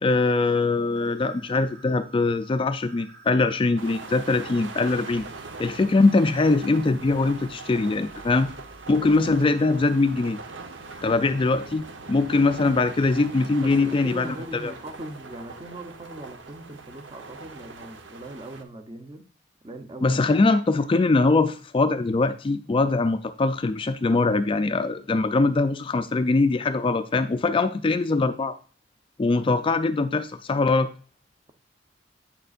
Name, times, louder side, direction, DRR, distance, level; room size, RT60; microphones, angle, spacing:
voice 1, 0.0-5.3 5.6-8.5 8.9-10.4 11.0-14.3 14.6-14.7 20.0-28.6 29.2-30.9, left 3 dB, 30° left, 11 dB, 0.3 m, -22 dB
sound 1, 0.9-11.5, right 4 dB, 60° right, 1.5 m, -52 dB
sound 2, 3.8-18.6, right 3 dB, 80° right, 0.9 m, -41 dB
voice 2, 13.6-19.2 19.6-20.2, right 1 dB, 25° right, 7 dB, 0.8 m, -40 dB
8.7 x 6.7 x 2.5 m, 0.42 s
head